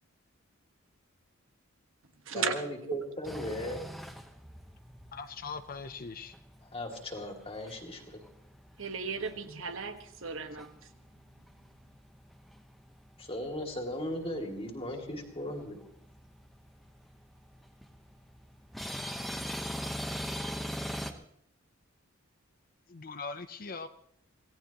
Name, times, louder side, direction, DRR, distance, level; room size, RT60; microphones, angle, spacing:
voice 1, 2.3-3.8 6.6-8.2 13.2-15.8, left 1 dB, 25° left, 2 dB, 2.4 m, -37 dB
sound 1, 3.2-21.1, equal, ahead, 1.0 m, -44 dB
voice 2, 5.1-6.3 22.9-23.9, left 4 dB, 45° left, 10 dB, 0.6 m, -41 dB
voice 3, 8.8-10.7, right 5 dB, 65° right, 7 dB, 1.4 m, -35 dB
26.5 x 17.0 x 3.0 m, 0.69 s
head